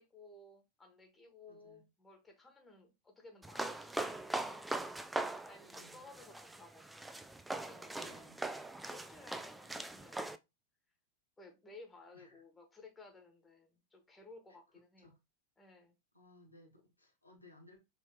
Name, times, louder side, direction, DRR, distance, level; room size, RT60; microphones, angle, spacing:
voice 1, 0.0-5.0 5.4-7.1 7.5-8.3 8.9-10.4 11.4-15.1 15.6-16.0, left 3 dB, 10° left, 1.3 m, -58 dB
voice 2, 1.5-1.9 5.8-6.1 7.9-8.4 12.1-12.4 15.0-15.2 16.1-17.8, left 1 dB, 85° left, 1.4 m, -61 dB
sound 1, 3.4-10.4, right 2 dB, 5° right, 0.3 m, -41 dB
5.7 x 2.9 x 2.9 m
figure-of-eight pair, 90°, 0 cm